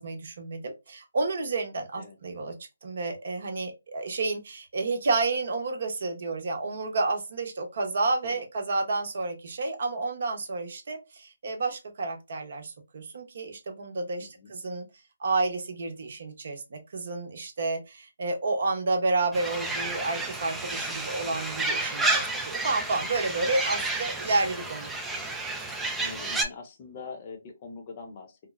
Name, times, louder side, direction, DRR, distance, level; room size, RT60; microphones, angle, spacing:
voice 1, 0.0-2.5 2.8-14.8 15.2-24.9, right 3 dB, 55° right, 4 dB, 0.8 m, -30 dB
voice 2, 14.2-14.5 23.8-23.9 25.9-28.4, left 4 dB, 30° left, 4 dB, 0.7 m, -43 dB
sound 1, 19.3-26.4, right 2 dB, 5° right, 0.3 m, -31 dB
3.0 x 2.0 x 2.4 m, 0.25 s
figure-of-eight pair, 150°, 0 cm